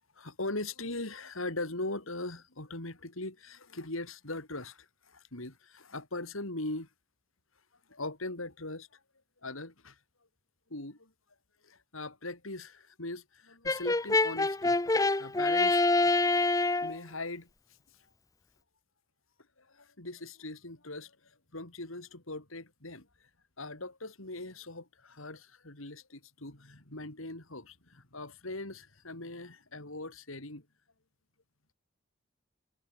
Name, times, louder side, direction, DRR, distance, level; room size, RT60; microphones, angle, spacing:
voice 1, 0.2-6.9 7.9-9.0 9.4-10.0 10.7-11.1 11.6-14.8 15.2-16.1 16.8-17.5 19.6-23.1 23.6-30.7, left 2 dB, 75° left, 4.1 m, -40 dB
Brass instrument, 13.7-17.0, left 2 dB, 15° left, 0.6 m, -26 dB
head